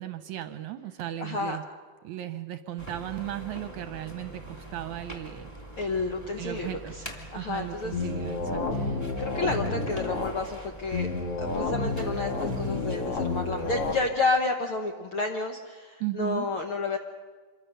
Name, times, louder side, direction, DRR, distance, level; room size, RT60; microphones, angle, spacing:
voice 1, 0.0-1.6 2.0-5.5 6.4-6.9 7.3-8.9 16.0-16.5, right 13 dB, 75° right, 10 dB, 1.9 m, -36 dB
voice 2, 1.2-1.6 5.8-7.9 8.7-11.1 11.4-17.0, left 3 dB, 65° left, 3 dB, 1.3 m, -31 dB
sound 1, 2.8-14.0, right 1 dB, 5° left, 2.4 m, -43 dB
sound 2, 7.9-10.3 10.9-13.9, left 3 dB, 50° left, 2.6 m, -30 dB
26.5 x 23.0 x 6.7 m, 1.5 s
omnidirectional pair, 4.0 m